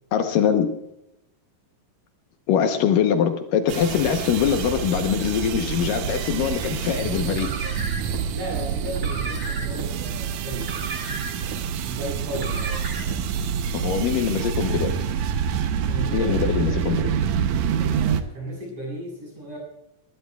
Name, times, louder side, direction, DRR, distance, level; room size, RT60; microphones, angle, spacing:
voice 1, 0.1-0.7 2.5-7.5 13.7-14.9 16.1-17.1, left 8 dB, 75° left, 6 dB, 2.5 m, -23 dB
sound 1, 3.7-18.2, right 7 dB, 75° right, 1.7 m, -27 dB
Car, 7.2-8.2 8.9-9.9 10.5-11.6 12.3-13.2, right 2 dB, 30° right, 1.9 m, -35 dB
voice 2, 8.3-10.8 11.7-12.7 15.9-17.2 17.7-19.6, right 1 dB, 45° right, -2 dB, 9.0 m, -35 dB
21.5 x 20.5 x 2.4 m, 0.86 s
omnidirectional pair, 4.1 m